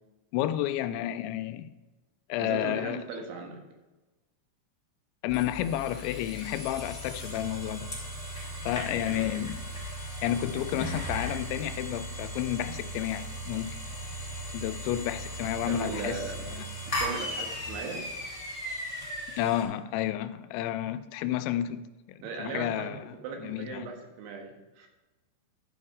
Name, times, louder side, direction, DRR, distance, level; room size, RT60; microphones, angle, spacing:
voice 1, 0.3-1.7 2.3-3.0 5.2-7.9 8.4-9.6 10.2-13.8 14.5-16.7 19.4-21.8 22.2-23.1 23.4-23.9, left 12 dB, 90° left, 2.9 m, -31 dB
voice 2, 2.4-3.6 9.1-9.3 15.6-16.4 16.9-18.1 22.2-24.9, right 4 dB, 90° right, 3.8 m, -38 dB
sound 1, 5.3-19.6, equal, 10° left, 2.9 m, -37 dB
11.5 x 5.5 x 4.8 m
omnidirectional pair, 5.2 m